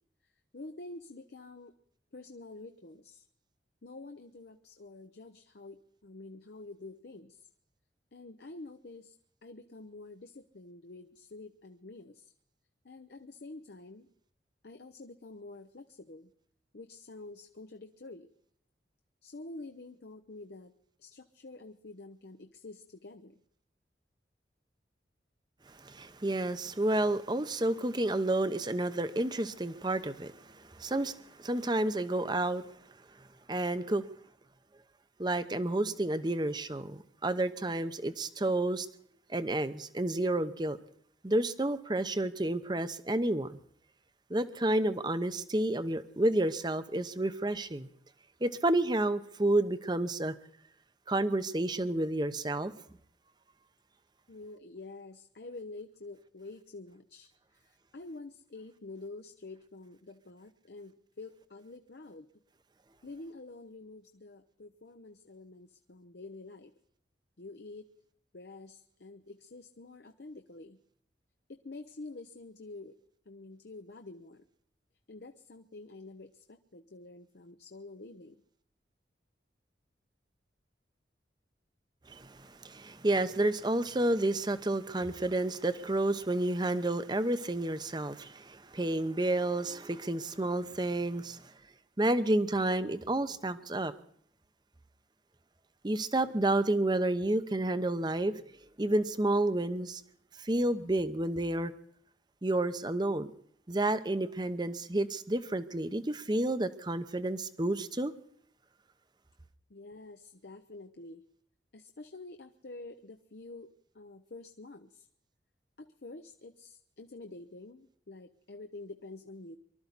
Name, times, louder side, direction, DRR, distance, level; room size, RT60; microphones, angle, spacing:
voice 1, 0.5-1.7 2.1-3.2 3.8-7.4 8.1-9.1 9.4-12.3 12.8-14.1 14.6-16.3 16.7-18.3 19.2-20.7 21.0-23.3 32.1-32.3 54.3-57.3 57.9-62.3 63.0-66.7 67.4-67.9 68.3-70.8 71.5-73.0 73.3-74.4 75.1-78.4 109.7-111.2 111.7-115.1 115.8-119.6, left 2 dB, 60° left, 0.7 m, -48 dB
voice 2, 25.7-32.6 33.5-34.0 35.2-38.9 39.3-40.8 41.2-43.6 44.3-47.9 48.4-50.3 51.1-52.7 82.1-91.4 92.0-93.9 95.8-98.3 98.8-100.0 100.4-101.7 102.4-103.3 103.7-108.1, right 1 dB, 25° right, 0.8 m, -30 dB
24.0 x 13.0 x 4.1 m
head